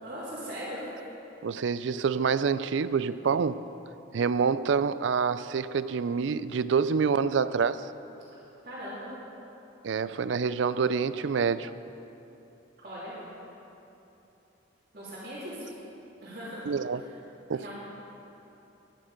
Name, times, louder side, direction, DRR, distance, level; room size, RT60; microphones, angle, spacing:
voice 1, 0.0-0.8 8.6-9.1 12.8-13.1 14.9-15.7 16.2-16.6 17.0-17.1 17.5-17.7, equal, 45° right, -12 dB, 3.4 m, -39 dB
voice 2, 1.4-3.6 4.1-7.9 9.8-11.7 16.7-17.0 17.5-17.7, right 6 dB, 70° right, 14 dB, 0.4 m, -27 dB
14.0 x 11.0 x 5.2 m, 3.0 s
head